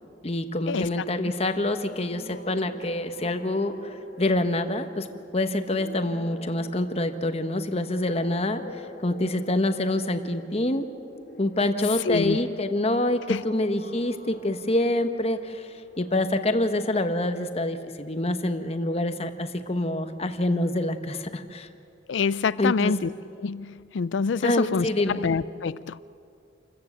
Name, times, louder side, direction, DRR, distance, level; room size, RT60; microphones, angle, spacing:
voice 1, 0.2-5.1 5.3-10.9 11.4-21.7 22.6-22.9 24.4-25.2, left 1 dB, 35° left, 8 dB, 1.1 m, -26 dB
sound 1, 1.8-18.1, left 1 dB, 60° left, 2.3 m, -47 dB
voice 2, 12.1-12.4 13.3-13.4 22.1-23.1 23.4-26.0, left 5 dB, 80° left, 18 dB, 0.4 m, -26 dB
28.0 x 14.5 x 8.0 m, 2.6 s
head